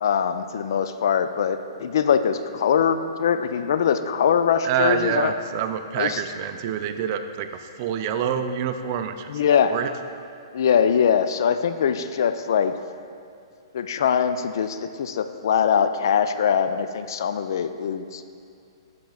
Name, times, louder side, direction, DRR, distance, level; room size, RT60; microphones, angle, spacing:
voice 1, 0.0-5.3 6.0-6.2 9.3-9.7 10.5-12.7 13.7-18.2, left 7 dB, 55° left, 10 dB, 0.3 m, -22 dB
voice 2, 4.6-9.3 9.6-9.9, right 8 dB, 40° right, 8 dB, 0.4 m, -26 dB
10.0 x 6.7 x 2.3 m, 2.4 s
figure-of-eight pair, 115°, 2 cm